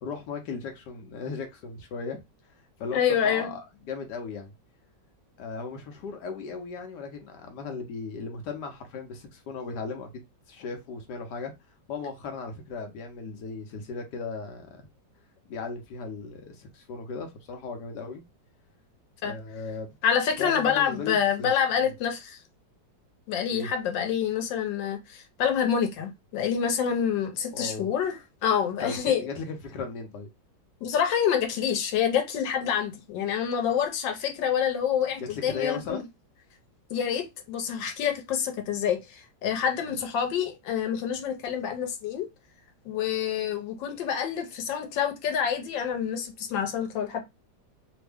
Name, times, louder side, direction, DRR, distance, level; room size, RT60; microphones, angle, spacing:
voice 1, 0.0-2.2 2.8-4.5 5.4-10.2 10.5-11.5 11.9-14.9 15.5-18.2 19.2-19.9 20.4-21.5 21.8-21.9 23.5-23.7 27.5-27.9 28.8-30.3 35.2-36.1 39.9-40.0, left 4 dB, 70° left, 1.2 m, -36 dB
voice 2, 2.9-3.5 19.2-19.3 20.0-22.4 23.3-29.3 30.8-36.0 36.9-42.3 42.8-47.2, left 8 dB, 90° left, 1.5 m, -27 dB
3.3 x 2.1 x 3.4 m
omnidirectional pair, 2.0 m